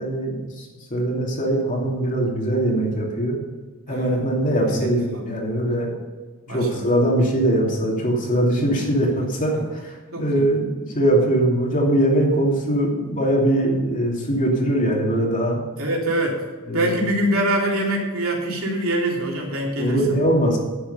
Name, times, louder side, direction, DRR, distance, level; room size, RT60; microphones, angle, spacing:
voice 1, 0.0-3.4 3.9-5.9 6.5-9.9 10.2-15.6 16.7-16.9 19.8-20.6, right 1 dB, 40° left, -1 dB, 2.8 m, -21 dB
voice 2, 3.9-4.4 4.7-5.2 6.5-6.9 9.2-9.6 10.1-10.5 15.8-16.4 16.7-20.2, right 1 dB, 75° right, -2 dB, 3.3 m, -25 dB
10.5 x 9.4 x 5.6 m, 1.3 s
head